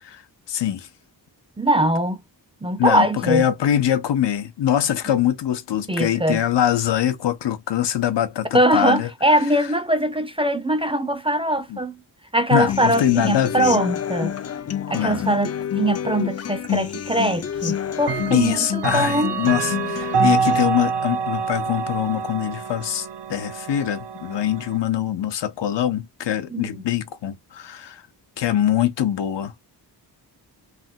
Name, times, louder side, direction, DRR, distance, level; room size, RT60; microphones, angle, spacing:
voice 1, 0.5-0.9 2.8-9.1 11.7-11.8 12.5-13.7 14.9-15.2 18.3-28.0 28.4-29.6, left 11 dB, 85° left, 0.7 m, -23 dB
voice 2, 1.6-2.2 2.6-3.4 5.9-6.4 8.5-12.0 12.3-14.4 14.9-19.3 26.5-26.8, right 1 dB, 15° right, 0.5 m, -22 dB
Human voice / Acoustic guitar, 12.7-20.7, left 9 dB, 40° left, 0.4 m, -28 dB
Clock, 16.6-16.7 18.0-24.8, right 6 dB, 80° right, 0.7 m, -26 dB
3.3 x 2.2 x 2.6 m
wide cardioid pair, 100°, 41 cm